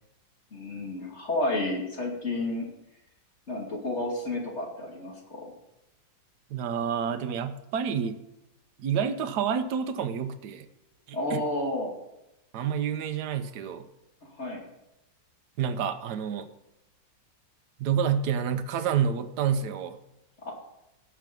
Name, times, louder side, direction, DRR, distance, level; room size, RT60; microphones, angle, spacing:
voice 1, 0.5-2.7 3.5-5.5 11.1-11.9 14.4-14.6 20.4-20.5, left 2 dB, 35° left, -1 dB, 2.7 m, -31 dB
voice 2, 6.5-8.2 8.8-10.7 11.1-11.4 12.5-13.9 15.6-16.5 17.8-20.0, right 7 dB, 70° right, 9 dB, 1.3 m, -28 dB
17.0 x 6.1 x 5.3 m, 0.90 s
omnidirectional pair, 1.9 m